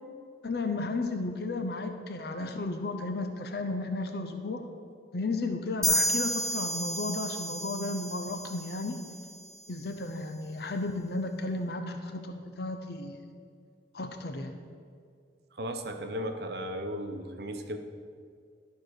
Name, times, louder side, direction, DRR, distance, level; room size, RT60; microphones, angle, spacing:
voice 1, 0.4-4.6 5.1-9.0 9.7-13.2 13.9-14.6, left 2 dB, 60° left, 6 dB, 0.7 m, -34 dB
sound 1, 5.8-9.4, equal, 5° left, 0.9 m, -31 dB
voice 2, 15.6-17.8, equal, 60° right, 6 dB, 0.8 m, -35 dB
11.5 x 4.7 x 6.5 m, 2.2 s
head